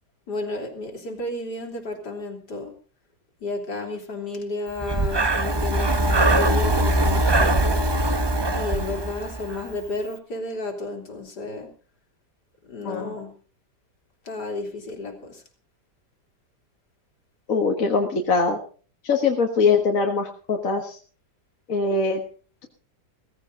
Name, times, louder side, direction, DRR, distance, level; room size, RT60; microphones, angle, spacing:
voice 1, 0.3-2.7 3.4-7.8 8.5-11.7 12.6-13.3 14.3-15.4, left 2 dB, 65° left, 3 dB, 3.7 m, -32 dB
Breathing, 4.8-9.7, right 1 dB, 25° right, 0.6 m, -22 dB
voice 2, 12.8-13.2 17.5-18.6 19.0-21.0 21.7-22.2, left 4 dB, 50° left, 2 dB, 1.9 m, -22 dB
17.0 x 15.5 x 3.8 m, 0.39 s
omnidirectional pair, 1.9 m